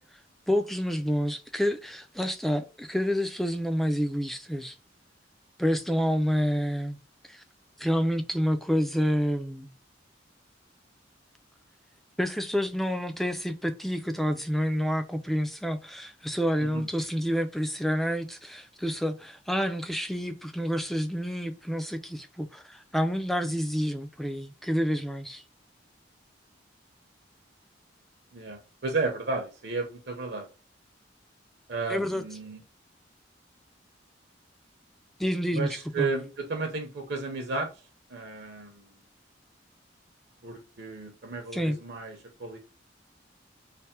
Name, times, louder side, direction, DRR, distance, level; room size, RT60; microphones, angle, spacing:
voice 1, 0.5-4.8 5.6-7.0 7.3-7.4 7.8-9.7 12.2-25.4 31.9-32.2 35.2-35.7 36.0-36.1 41.5-41.8, equal, ahead, 0.3 m, -28 dB
voice 2, 28.3-30.5 31.7-32.6 35.5-37.7 38.1-38.9 40.4-42.6, right 3 dB, 60° right, 0.7 m, -33 dB
3.4 x 2.1 x 4.2 m
head